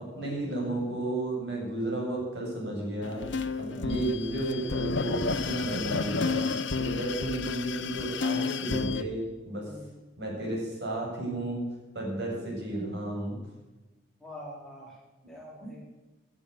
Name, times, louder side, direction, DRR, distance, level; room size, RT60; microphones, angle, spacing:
voice 1, 0.2-3.3 3.6-6.4 6.7-9.7 10.2-11.6 11.9-13.4, right 1 dB, 65° right, -2 dB, 7.4 m, -33 dB
sound 1, 3.0-9.0, left 4 dB, 85° left, 0.9 m, -31 dB
voice 2, 6.8-7.2 9.6-10.0 14.2-15.0 15.3-15.8, equal, ahead, -4 dB, 4.1 m, -46 dB
18.0 x 11.0 x 6.9 m, 1.1 s
head